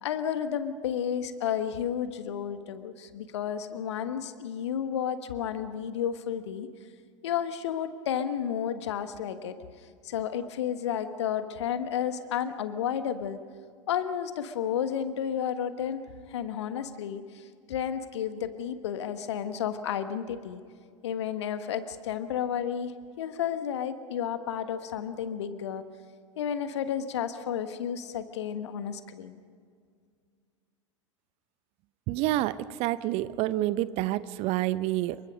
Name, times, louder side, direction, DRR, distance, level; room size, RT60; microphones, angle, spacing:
voice 1, 0.0-6.7 7.2-9.6 10.0-13.4 13.9-20.6 21.0-25.8 26.4-29.4, left 9 dB, 60° left, 10 dB, 1.4 m, -32 dB
voice 2, 32.1-35.2, right 15 dB, 40° right, 17 dB, 0.8 m, -28 dB
27.5 x 23.5 x 5.3 m, 2.1 s
figure-of-eight pair, 85°, 16 cm